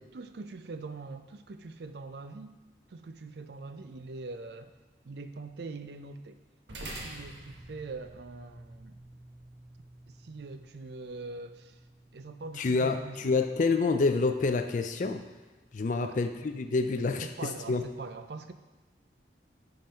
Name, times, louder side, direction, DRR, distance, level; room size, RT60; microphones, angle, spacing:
voice 1, 0.1-2.6 2.9-4.7 5.1-6.4 7.0-9.0 10.1-11.8 12.1-13.4 15.9-16.2 17.2-18.5, right 3 dB, 65° right, 9 dB, 0.5 m, -43 dB
sound 1, 6.7-15.3, right 1 dB, 85° right, 1.2 m, -49 dB
voice 2, 12.6-15.2 15.7-17.8, left 3 dB, 45° left, 7 dB, 0.4 m, -28 dB
10.5 x 3.9 x 4.3 m, 1.3 s
head